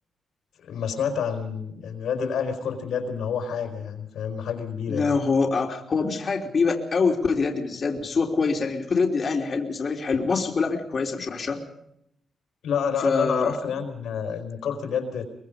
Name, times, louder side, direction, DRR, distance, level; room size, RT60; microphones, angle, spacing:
voice 1, 0.6-5.2 12.6-15.3, left 7 dB, 90° left, 6 dB, 4.6 m, -28 dB
voice 2, 4.9-11.6 13.0-13.6, left 4 dB, 45° left, 1 dB, 3.4 m, -25 dB
23.0 x 23.0 x 5.2 m, 0.75 s
cardioid pair, 90°, 0 cm